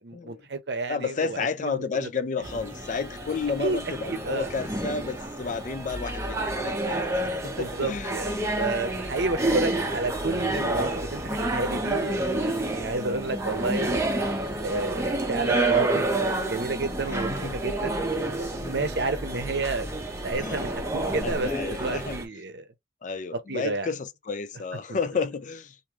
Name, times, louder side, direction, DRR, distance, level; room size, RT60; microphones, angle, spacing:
voice 1, 0.0-1.7 2.0-2.1 3.6-4.5 7.5-14.1 14.6-19.9 20.2-22.6 23.5-23.9 24.9-25.0, right 3 dB, 65° right, 0.7 m, -31 dB
voice 2, 0.9-8.2 13.0-13.3 17.3-17.6 18.6-18.8 20.4-20.6 21.2-22.2 23.0-25.7, left 5 dB, 45° left, 0.4 m, -32 dB
sound 1, 2.4-22.3, right 2 dB, 15° right, 0.7 m, -29 dB
3.1 x 2.6 x 2.4 m
head